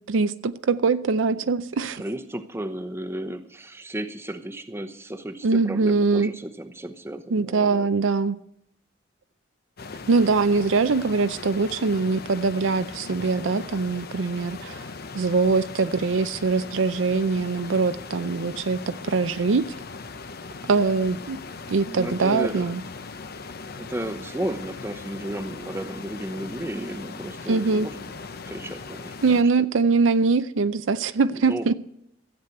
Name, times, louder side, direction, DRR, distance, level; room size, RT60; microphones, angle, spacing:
voice 1, 0.1-2.0 5.4-6.3 7.3-8.4 10.1-14.8 15.1-19.7 20.7-21.4 21.7-22.8 27.5-27.9 29.2-31.7, right 4 dB, 80° right, 0.5 m, -22 dB
voice 2, 1.8-7.9 21.8-22.7 23.7-28.1 28.4-29.7 31.3-31.7, right 1 dB, 15° right, 0.9 m, -34 dB
sound 1, 9.8-29.4, left 4 dB, 55° left, 0.8 m, -39 dB
14.0 x 8.3 x 7.8 m
head